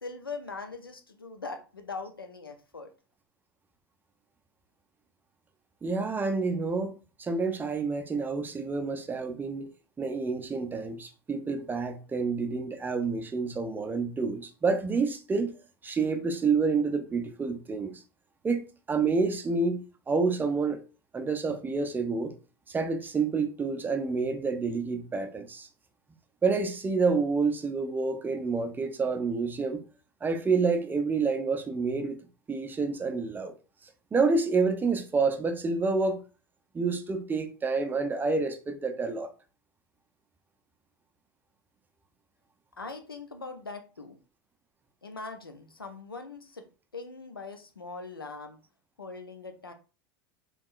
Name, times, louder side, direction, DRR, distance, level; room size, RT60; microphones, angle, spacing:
voice 1, 0.0-2.9 42.8-44.2 45.0-46.7 46.9-48.6 49.0-49.7, left 4 dB, 90° left, 0.5 m, -41 dB
voice 2, 5.8-9.7 10.0-15.5 15.8-18.0 18.4-20.8 21.1-22.3 22.7-25.7 26.4-29.8 30.2-32.2 32.5-33.5 34.1-36.2 36.7-39.3, right 4 dB, 15° right, 0.5 m, -28 dB
3.5 x 3.1 x 2.5 m
figure-of-eight pair, 80°, 12 cm